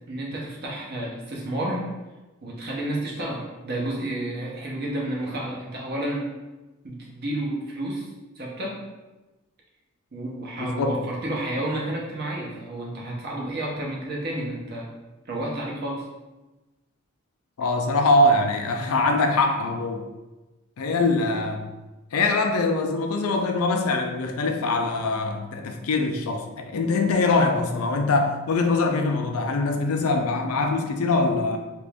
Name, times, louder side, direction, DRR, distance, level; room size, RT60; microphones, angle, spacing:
voice 1, 0.1-1.9 2.4-6.3 6.8-8.1 8.4-8.8 10.1-14.9 15.2-16.0, right 1 dB, 50° right, -3 dB, 0.8 m, -31 dB
voice 2, 10.6-11.0 17.6-20.1 20.8-21.7 22.1-31.6, left 2 dB, 85° left, 4 dB, 0.4 m, -23 dB
2.9 x 2.6 x 3.4 m, 1.1 s
head